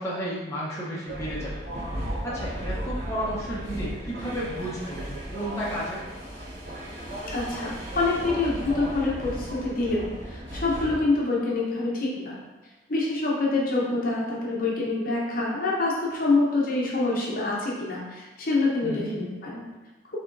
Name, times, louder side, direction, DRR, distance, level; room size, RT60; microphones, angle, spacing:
voice 1, 0.0-1.6 2.2-6.0 18.8-19.1, equal, 15° left, -8 dB, 0.8 m, -32 dB
sound 1, 1.1-11.0, equal, 80° right, 1.5 m, -35 dB
voice 2, 7.3-12.4 12.9-19.6, left 3 dB, 45° left, -4 dB, 0.8 m, -26 dB
6.0 x 3.0 x 2.6 m, 1.2 s
head